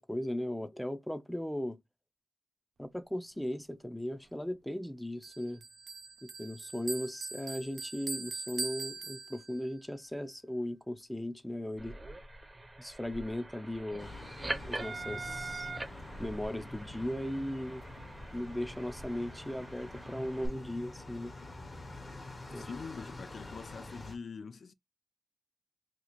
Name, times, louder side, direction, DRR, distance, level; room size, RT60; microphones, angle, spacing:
voice 1, 0.0-1.8 2.8-5.6 6.2-12.0 12.8-14.1 14.6-15.7 16.2-17.8 18.3-21.3 22.5-22.7, left 1 dB, 5° left, 0.5 m, -37 dB
Bell, 5.2-9.7, right 4 dB, 70° right, 0.4 m, -41 dB
sound 1, 11.7-20.5, right 2 dB, 35° right, 0.8 m, -43 dB
sound 2, 14.0-24.2, left 2 dB, 50° left, 1.1 m, -47 dB
voice 2, 22.6-24.7, left 5 dB, 75° left, 0.3 m, -44 dB
2.9 x 2.4 x 4.1 m
cardioid pair, 50°, 0 cm